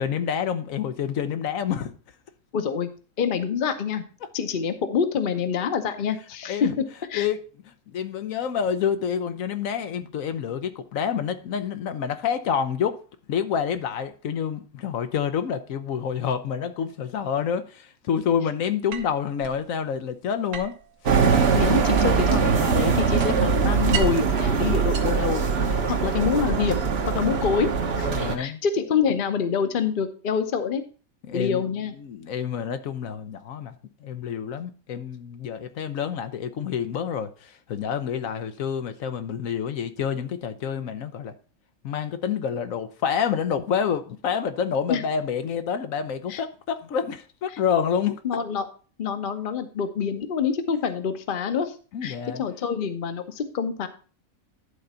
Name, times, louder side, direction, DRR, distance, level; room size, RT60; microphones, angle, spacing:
voice 1, 0.0-1.9 4.2-4.3 6.5-6.8 7.1-7.4 7.9-13.0 13.3-20.7 21.0-21.1 25.7-26.0 27.2-27.5 28.1-28.6 31.3-31.7 32.0-33.8 34.0-41.3 41.8-48.2 51.9-52.4, left 7 dB, 75° left, 1.1 m, -28 dB
voice 2, 2.5-2.9 3.2-4.0 4.3-6.8 7.1-7.3 21.5-25.4 25.9-26.8 27.1-27.7 28.0-30.8 31.3-32.0 44.9-45.0 46.3-46.4 48.2-48.7 49.0-51.7 52.0-53.9, left 6 dB, 45° left, 0.9 m, -26 dB
sound 1, 18.9-19.6 20.5-22.4 22.7-24.3 24.8-25.9, right 6 dB, 65° right, 1.4 m, -35 dB
sound 2, 21.1-28.4, right 5 dB, 50° right, 1.1 m, -22 dB
11.5 x 3.9 x 5.5 m
omnidirectional pair, 1.4 m